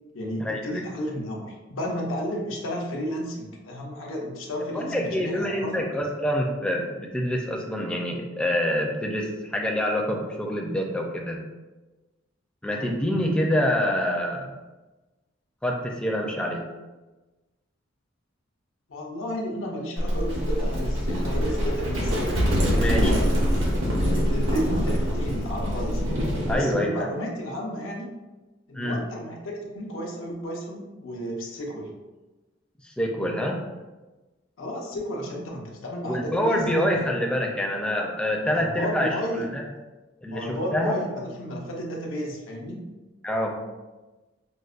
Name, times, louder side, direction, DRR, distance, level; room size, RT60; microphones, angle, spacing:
voice 1, 0.1-5.7 12.7-12.9 18.9-22.2 22.6-23.3 24.0-26.0 26.5-28.1 28.7-31.9 34.6-36.7 36.9-37.1 38.4-39.5 40.3-42.9, equal, 85° left, -1 dB, 0.6 m, -32 dB
voice 2, 4.7-11.4 12.6-14.5 15.6-16.6 22.7-23.1 26.5-26.9 28.8-29.0 32.8-33.6 36.0-39.6 40.2-41.0 43.2-43.5, equal, 5° left, -1 dB, 0.4 m, -26 dB
Livestock farm animals working animals, 20.0-26.6, equal, 80° right, 0.9 m, -24 dB
5.1 x 2.1 x 2.4 m, 1.2 s
head